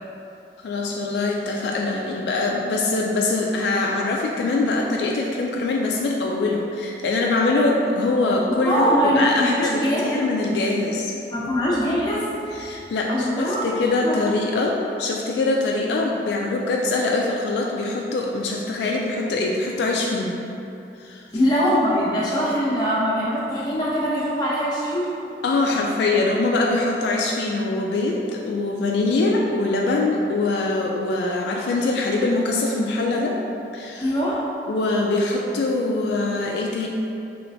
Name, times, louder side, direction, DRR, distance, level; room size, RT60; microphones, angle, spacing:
voice 1, 0.6-11.1 12.5-20.4 21.0-21.2 25.4-33.4 33.7-34.1 34.7-36.9, left 2 dB, 70° left, -1 dB, 0.3 m, -23 dB
voice 2, 8.6-10.1 11.3-12.3 13.1-14.3 21.3-25.1 34.0-34.4, equal, 25° left, -7 dB, 0.7 m, -22 dB
4.3 x 3.1 x 2.6 m, 2.7 s
head